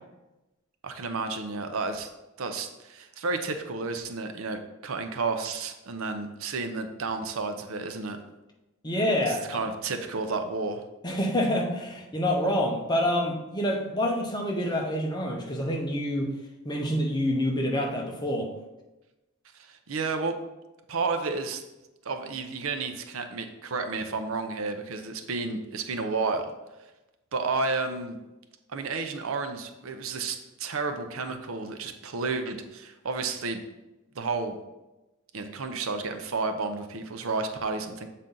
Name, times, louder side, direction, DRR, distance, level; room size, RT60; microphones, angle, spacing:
voice 1, 0.8-2.1 2.4-8.2 9.3-10.8 19.5-20.4 20.9-21.6 22.1-26.5 27.3-28.2 28.7-33.6 34.2-34.6 35.3-38.1, right 4 dB, 75° right, 7 dB, 0.6 m, -31 dB
voice 2, 8.8-9.6 11.0-16.3 16.6-18.5, left 1 dB, 20° left, 1 dB, 0.9 m, -27 dB
7.5 x 4.1 x 3.8 m, 1.0 s
head